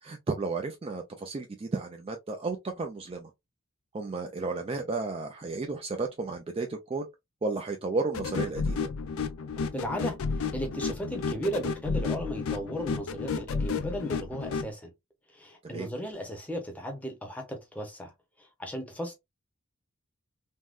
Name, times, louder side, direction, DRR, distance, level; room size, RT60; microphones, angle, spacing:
voice 1, 0.0-3.3 3.9-7.1 7.4-8.9 15.7-15.9, right 3 dB, 25° right, 0.3 m, -33 dB
sound 1, 8.1-14.7, left 5 dB, 75° left, 0.4 m, -32 dB
voice 2, 9.7-14.9 15.3-18.1 18.4-19.1, equal, 5° left, 0.7 m, -36 dB
3.5 x 2.1 x 2.4 m
head